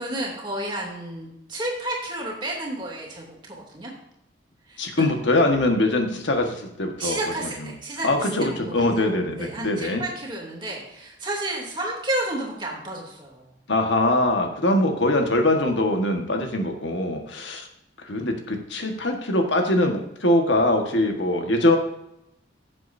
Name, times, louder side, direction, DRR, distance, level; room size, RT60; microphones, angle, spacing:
voice 1, 0.0-3.9 4.7-5.0 7.0-9.1 9.4-13.5, right 1 dB, 25° right, -2 dB, 2.7 m, -31 dB
voice 2, 4.8-7.2 7.6-7.7 8.0-10.0 13.7-17.7 18.0-21.8, left 1 dB, 80° left, 3 dB, 1.5 m, -22 dB
16.0 x 7.6 x 2.7 m, 0.80 s
head